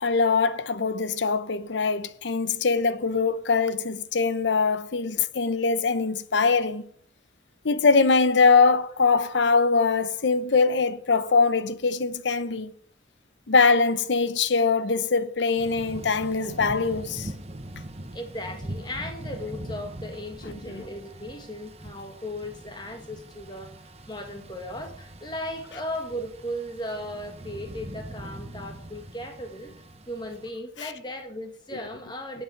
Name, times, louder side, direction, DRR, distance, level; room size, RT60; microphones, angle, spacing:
voice 1, 0.0-6.8 7.6-12.7 13.5-17.3 20.7-20.8, left 4 dB, 80° left, 0.8 m, -22 dB
Thunder / Rain, 15.6-30.5, right 1 dB, 35° right, 1.0 m, -41 dB
voice 2, 18.1-32.4, left 1 dB, 25° left, 1.9 m, -37 dB
11.0 x 8.2 x 5.8 m
head